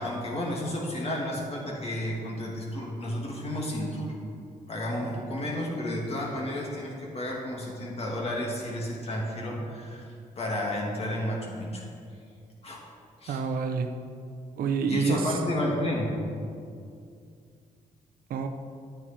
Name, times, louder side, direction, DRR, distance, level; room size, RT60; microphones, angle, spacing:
voice 1, 0.0-4.1 4.7-11.8 12.6-12.8 13.2-13.4 14.9-16.1, left 1 dB, 45° left, -2 dB, 2.5 m, -32 dB
voice 2, 13.3-13.9 14.6-15.4 18.3-18.5, right 5 dB, 85° right, 6 dB, 0.8 m, -27 dB
11.0 x 8.9 x 4.5 m, 2.4 s
cardioid pair, 100°, 15 cm